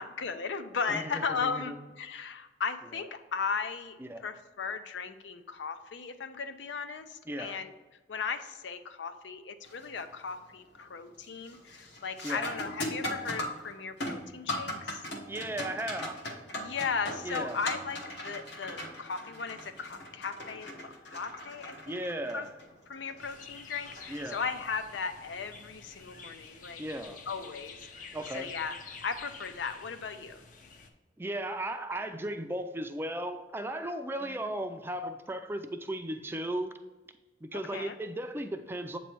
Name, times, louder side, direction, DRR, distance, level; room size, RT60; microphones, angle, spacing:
voice 1, 0.0-7.7 8.1-15.0 16.6-22.0 22.3-22.5 22.9-26.8 27.3-30.4 34.2-34.5 37.5-38.0, left 5 dB, 85° left, 0.5 m, -37 dB
voice 2, 0.9-1.7 4.0-4.2 7.3-7.6 12.2-12.5 15.2-16.3 17.2-17.6 21.9-22.5 24.1-24.4 26.8-27.2 28.1-28.5 31.2-36.7 37.4-39.0, right 1 dB, 15° right, 0.4 m, -36 dB
sound 1, 9.6-10.0 10.4-10.9 11.2-24.7 27.2-27.3 28.2-28.4, left 1 dB, 65° left, 1.1 m, -40 dB
sound 2, 23.2-30.9, left 5 dB, 45° left, 0.6 m, -49 dB
8.0 x 3.1 x 4.5 m
head